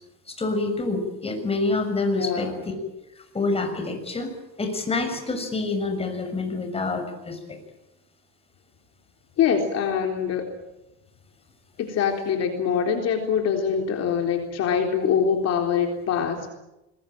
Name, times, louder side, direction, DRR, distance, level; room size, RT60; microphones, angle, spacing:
voice 1, 0.3-2.7 3.3-4.3 4.6-7.6, left 3 dB, 20° left, 6 dB, 6.6 m, -27 dB
voice 2, 2.1-2.6 9.4-10.5 11.8-16.5, left 7 dB, 55° left, 3 dB, 3.9 m, -24 dB
26.0 x 21.0 x 9.0 m, 0.95 s
cardioid pair, 130°, 30 cm